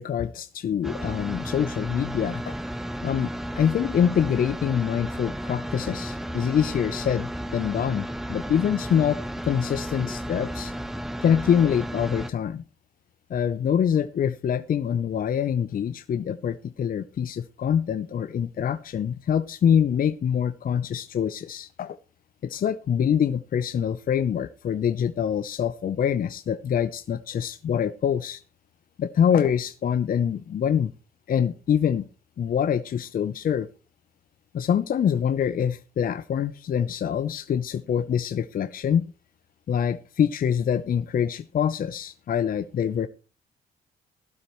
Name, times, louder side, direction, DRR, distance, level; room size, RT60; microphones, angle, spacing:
voice 1, 0.0-2.6 3.0-10.7 11.2-12.6 13.3-22.0 22.4-28.4 29.0-30.9 31.3-32.1 32.4-33.7 34.5-39.0 39.7-43.1, left 8 dB, 55° left, 14 dB, 0.6 m, -25 dB
sound 1, 0.8-12.3, equal, ahead, 0.9 m, -33 dB
17.0 x 12.0 x 3.0 m, 0.34 s
supercardioid pair, 55°, 18 cm